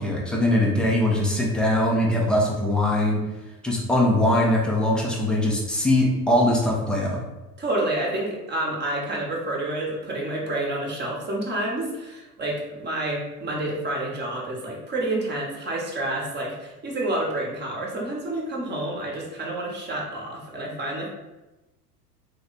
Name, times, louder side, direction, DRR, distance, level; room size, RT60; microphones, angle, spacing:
voice 1, 0.0-3.2 3.6-7.2, left 1 dB, ahead, -3 dB, 0.3 m, -21 dB
voice 2, 7.6-21.1, right 1 dB, 20° right, -2 dB, 1.0 m, -29 dB
3.1 x 2.1 x 3.9 m, 1.0 s
hypercardioid pair, 90°, 47 cm